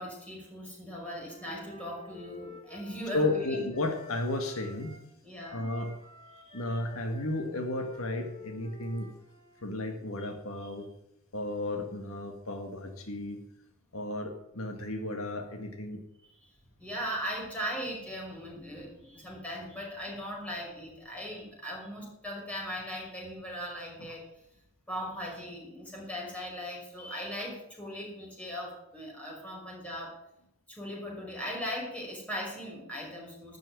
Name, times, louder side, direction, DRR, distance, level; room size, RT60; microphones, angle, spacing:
voice 1, 0.0-3.7 5.2-5.6 6.4-6.6 10.2-10.3 16.2-16.3 16.8-24.2 24.9-30.1 30.7-33.6, equal, 5° left, -4 dB, 5.7 m, -39 dB
Wind instrument woodwind instrument, 1.0-5.1 5.4-9.6, left 3 dB, 25° left, 3.2 m, -51 dB
voice 2, 3.1-5.0 5.5-5.9 6.5-9.1 9.6-10.9 11.3-13.4 13.9-16.0, left 2 dB, 90° left, 5 dB, 1.8 m, -33 dB
12.5 x 6.2 x 9.5 m, 0.81 s
head